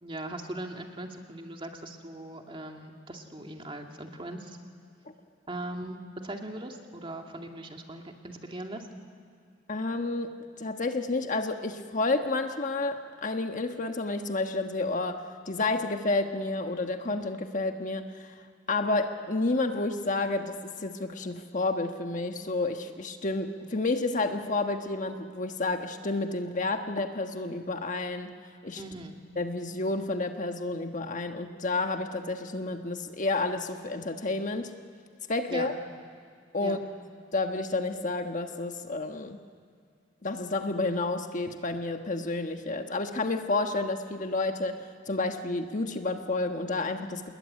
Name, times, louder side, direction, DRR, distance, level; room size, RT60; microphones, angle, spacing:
voice 1, 0.0-4.6 5.5-8.9 28.8-29.2 35.5-35.7 36.6-36.8, right 1 dB, 30° right, 3 dB, 2.3 m, -39 dB
voice 2, 9.7-28.3 28.6-28.8 29.4-34.7 35.3-35.7 36.5-36.8 37.3-39.4 40.2-47.3, left 2 dB, 45° left, 6 dB, 1.3 m, -30 dB
27.0 x 21.0 x 9.8 m, 2.2 s
head